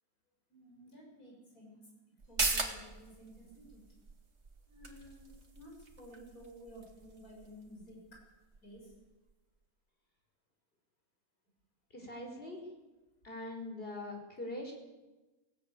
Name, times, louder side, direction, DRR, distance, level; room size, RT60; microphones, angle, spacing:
voice 1, 0.5-1.9 2.2-3.8 4.7-8.2 8.6-8.9, equal, 75° left, -2 dB, 7.1 m, -54 dB
sound 1, 2.2-9.3 9.7-9.8, right 3 dB, 50° right, 2.5 m, -41 dB
voice 2, 11.9-12.7 13.2-14.7, left 1 dB, 40° left, 2 dB, 5.0 m, -42 dB
17.0 x 17.0 x 9.0 m, 1.1 s
omnidirectional pair, 1.5 m